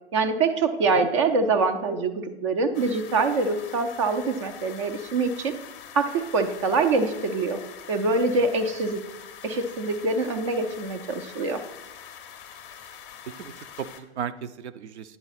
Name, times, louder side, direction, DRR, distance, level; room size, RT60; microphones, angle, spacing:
voice 1, 0.1-5.5 5.9-7.6 7.9-9.0 9.4-11.6, right 3 dB, 30° right, 9 dB, 0.4 m, -24 dB
sound 1, 2.7-14.0, left 8 dB, 25° left, 0.6 m, -44 dB
voice 2, 13.3-15.2, right 8 dB, 70° right, 13 dB, 0.6 m, -36 dB
9.8 x 3.9 x 4.1 m, 1.0 s
hypercardioid pair, 130°, 34 cm